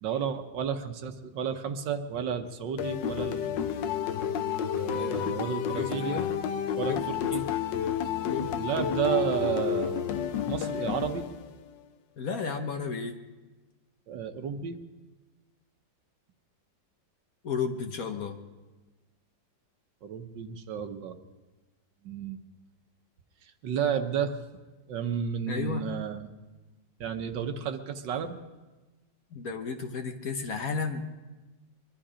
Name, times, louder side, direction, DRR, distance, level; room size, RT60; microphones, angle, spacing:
voice 1, 0.0-3.6 4.7-6.2 6.7-7.4 8.6-10.0 10.5-11.2 14.1-14.8 20.0-21.2 22.0-22.4 23.4-24.4 24.9-26.3 27.0-28.4, right 7 dB, 70° right, 7 dB, 1.6 m, -32 dB
sound 1, 2.8-11.7, left 8 dB, 75° left, 1.4 m, -30 dB
voice 2, 4.9-5.3 5.7-6.3 6.9-7.0 8.3-8.5 12.2-13.2 17.4-18.4 25.5-25.9 29.3-31.1, left 5 dB, 55° left, 5 dB, 1.3 m, -33 dB
23.0 x 11.5 x 5.0 m, 1.2 s
omnidirectional pair, 2.0 m